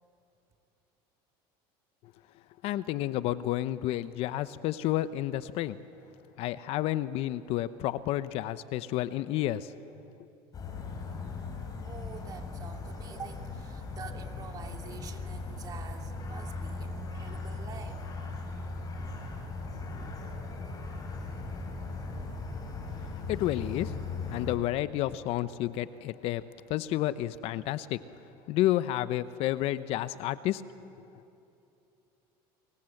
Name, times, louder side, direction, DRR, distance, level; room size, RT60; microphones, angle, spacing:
voice 1, 2.6-5.8 6.4-9.7 23.3-23.9 24.3-26.4 26.7-28.0 28.5-30.6, left 14 dB, 60° left, 14 dB, 0.8 m, -30 dB
sound 1, 10.5-24.6, left 3 dB, 35° left, 4.8 m, -38 dB
voice 2, 11.9-18.0 19.7-20.4, right 6 dB, 35° right, 3 dB, 2.7 m, -47 dB
24.5 x 23.5 x 7.9 m, 2.8 s
supercardioid pair, 120°, 11 cm